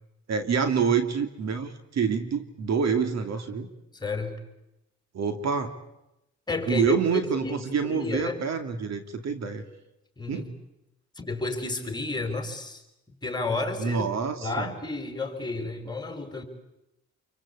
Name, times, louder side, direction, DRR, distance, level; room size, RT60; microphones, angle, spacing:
voice 1, 0.3-3.7 5.1-5.7 6.7-9.6 10.3-10.5 13.8-14.7, right 6 dB, 60° right, 8 dB, 2.6 m, -27 dB
voice 2, 3.9-4.4 6.5-8.4 10.2-10.5 11.2-12.8 13.2-14.1 14.4-16.4, left 3 dB, 15° left, 5 dB, 5.3 m, -31 dB
27.5 x 24.0 x 8.5 m, 0.89 s
cardioid pair, 90°, 30 cm